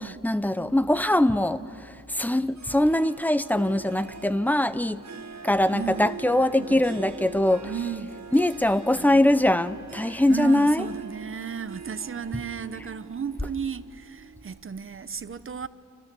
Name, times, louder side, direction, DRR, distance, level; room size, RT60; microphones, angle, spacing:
voice 1, 0.2-1.6 2.1-5.0 5.4-7.7 8.3-10.8, left 1 dB, 5° left, 0.6 m, -22 dB
Harp, 2.6-14.8, right 5 dB, 60° right, 1.4 m, -43 dB
sound 1, 5.5-14.0, left 2 dB, 55° left, 6.2 m, -55 dB
voice 2, 5.7-6.1 6.6-6.8 7.6-9.5 10.3-15.7, right 6 dB, 40° right, 0.8 m, -35 dB
30.0 x 27.5 x 6.9 m
wide cardioid pair, 160°, 32 cm